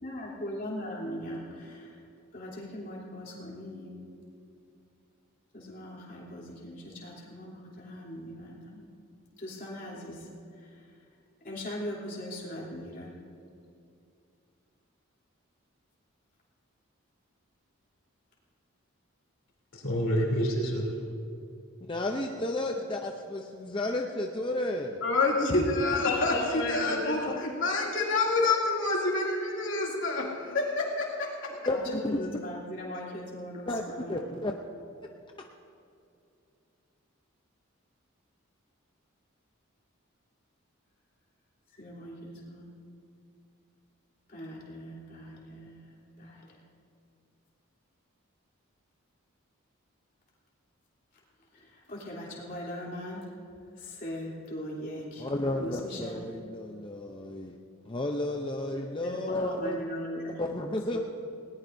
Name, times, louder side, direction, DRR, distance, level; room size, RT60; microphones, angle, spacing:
voice 1, 0.0-2.0 2.3-4.0 5.5-8.9 9.4-10.3 10.6-10.9 11.4-13.1 31.7-34.2 41.7-42.7 44.3-46.6 51.5-53.3 53.8-55.3 55.6-56.2 59.0-60.4, equal, 40° left, -4 dB, 3.2 m, -40 dB
voice 2, 19.7-20.9 26.0-27.4, equal, 80° left, -1 dB, 3.1 m, -29 dB
voice 3, 21.8-25.0 27.3-27.4 31.7-32.2 33.7-33.8 34.1-34.5 55.2-57.6 57.9-59.8 60.4-61.0, left 1 dB, 25° left, 2 dB, 0.6 m, -32 dB
voice 4, 25.0-31.3, left 3 dB, 65° left, -2 dB, 2.6 m, -27 dB
20.0 x 18.5 x 2.7 m, 2.5 s
head